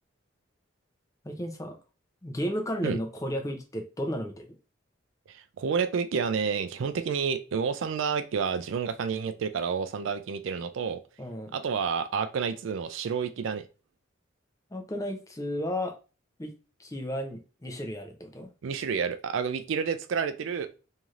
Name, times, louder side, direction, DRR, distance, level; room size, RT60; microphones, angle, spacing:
voice 1, 1.2-1.8 2.2-4.5 11.2-11.6 14.7-15.9 16.4-16.5 16.8-18.5, equal, 15° left, 4 dB, 0.4 m, -33 dB
voice 2, 5.6-11.0 11.5-13.6 18.6-20.8, right 6 dB, 70° right, 10 dB, 0.3 m, -29 dB
3.1 x 2.7 x 2.4 m, 0.33 s
head